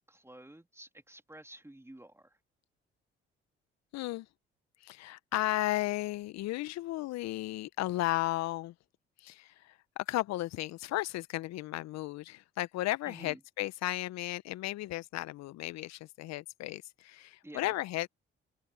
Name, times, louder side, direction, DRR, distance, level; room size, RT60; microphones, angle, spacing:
voice 1, 0.0-2.4 13.1-13.4 17.4-17.8, right 1 dB, 10° right, 3.5 m, -51 dB
voice 2, 3.9-4.3 4.8-8.7 9.2-18.1, left 17 dB, 65° left, 1.6 m, -34 dB
open air
hypercardioid pair, 45°, 29 cm